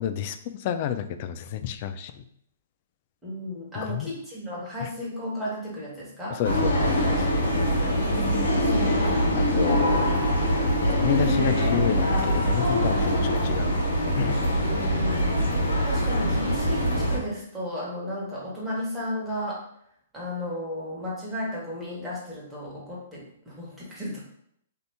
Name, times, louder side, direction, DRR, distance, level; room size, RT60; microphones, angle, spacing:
voice 1, 0.0-2.2 3.7-4.1 4.8-4.9 6.3-7.2 9.3-10.1 10.8-13.8 14.1-14.4, left 9 dB, 45° left, 9 dB, 0.3 m, -30 dB
voice 2, 3.2-6.9 7.5-9.0 14.6-19.6 20.1-24.2, left 1 dB, 5° right, -7 dB, 1.4 m, -34 dB
sound 1, 6.4-17.2, equal, 85° left, 1.0 m, -23 dB
2.8 x 2.6 x 3.4 m, 0.71 s
hypercardioid pair, 135°, 0 cm